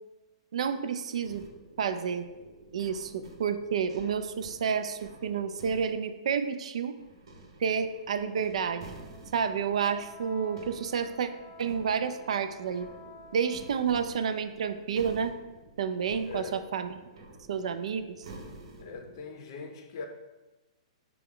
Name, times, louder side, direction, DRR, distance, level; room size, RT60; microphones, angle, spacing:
voice 1, 0.5-1.4 1.8-2.3 2.7-6.9 7.6-8.9 9.3-11.3 11.6-12.9 13.3-15.4 15.8-16.9 17.5-18.1, right 6 dB, 75° right, 10 dB, 0.3 m, -30 dB
sound 1, 1.2-5.9 7.0-19.2, right 2 dB, 60° right, 0.8 m, -50 dB
Wind instrument woodwind instrument, 8.0-14.2, left 1 dB, 5° right, 1.0 m, -52 dB
voice 2, 16.2-16.6 18.8-20.1, left 4 dB, 45° left, 5 dB, 0.5 m, -41 dB
5.9 x 2.3 x 3.6 m, 1.1 s
hypercardioid pair, 165°, 3 cm